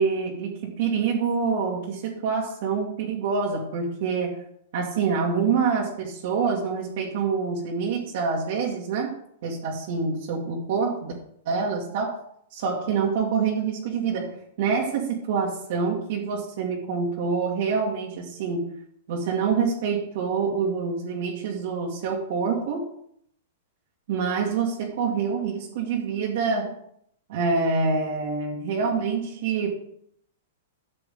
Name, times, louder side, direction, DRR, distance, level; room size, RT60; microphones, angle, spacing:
voice 1, 0.0-4.4 4.7-11.1 11.5-12.2 12.5-18.7 19.1-22.9 24.1-26.7 27.3-29.7, right 5 dB, 60° right, -3 dB, 2.1 m, -26 dB
13.0 x 7.0 x 3.8 m, 0.69 s
hypercardioid pair, 150°, 0 cm